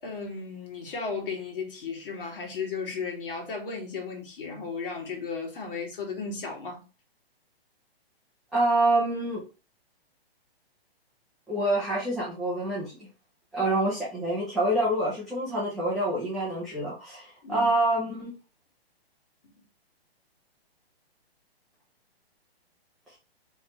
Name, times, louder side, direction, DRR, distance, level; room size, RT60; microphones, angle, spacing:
voice 1, 0.0-6.8 17.4-17.7, left 4 dB, 60° left, 1.9 m, -35 dB
voice 2, 8.5-9.4 11.5-13.1 13.5-18.3, right 1 dB, ahead, 0.4 m, -26 dB
3.9 x 3.1 x 2.9 m
hypercardioid pair, 145°, 31 cm